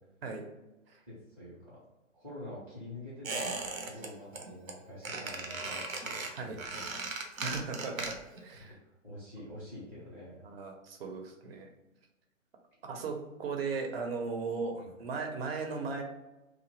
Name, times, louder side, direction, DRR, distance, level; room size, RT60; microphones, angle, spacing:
voice 1, 1.1-1.8 2.1-6.9 7.2-7.3 8.6-8.7 9.0-10.4 14.4-14.9, left 1 dB, 5° right, -11 dB, 0.4 m, -47 dB
Squeak, 3.2-4.1 4.3-4.7 5.0-8.4 8.7-8.8, right 3 dB, 85° right, 0.7 m, -37 dB
voice 2, 7.4-8.8 10.4-11.7 12.8-16.0, right 4 dB, 45° right, 3 dB, 0.6 m, -37 dB
2.9 x 2.1 x 3.0 m, 1.0 s
hypercardioid pair, 135°, 40 cm